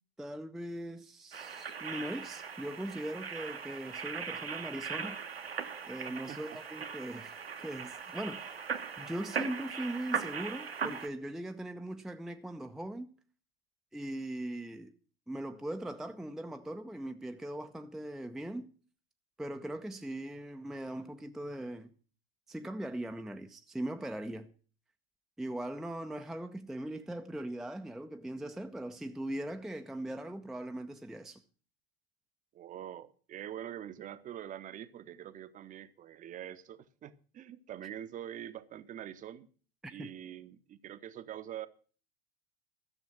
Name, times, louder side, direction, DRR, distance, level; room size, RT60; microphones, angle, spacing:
voice 1, 0.2-5.2 5.9-8.6 9.0-13.1 13.9-14.9 15.3-18.7 19.4-21.9 22.5-24.5 25.4-31.4 39.8-40.1, right 1 dB, ahead, 0.5 m, -40 dB
sound 1, 1.3-11.1, right 6 dB, 75° right, 1.3 m, -39 dB
voice 2, 6.3-6.6 32.5-39.5 39.9-41.7, right 11 dB, 25° right, 0.8 m, -44 dB
13.5 x 7.2 x 7.4 m
figure-of-eight pair, 80°, 30 cm